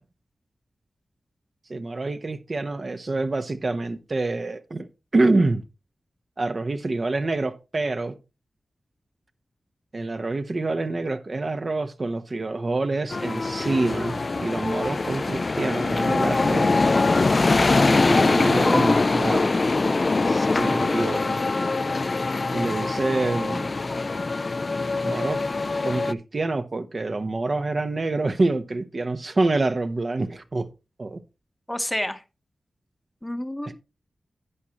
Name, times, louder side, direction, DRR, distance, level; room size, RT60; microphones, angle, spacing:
voice 1, 1.7-4.9 5.1-5.6 6.4-8.2 9.9-16.9 17.8-19.5 20.2-21.3 22.5-23.7 25.0-25.4 25.8-30.7 31.0-31.2, right 2 dB, 50° right, 0.8 m, -26 dB
sound 1, 13.1-26.1, left 3 dB, 45° left, 0.4 m, -23 dB
voice 2, 31.7-32.2 33.2-33.8, left 1 dB, 10° left, 0.9 m, -29 dB
11.0 x 8.5 x 2.9 m
cardioid pair, 55°, 0 cm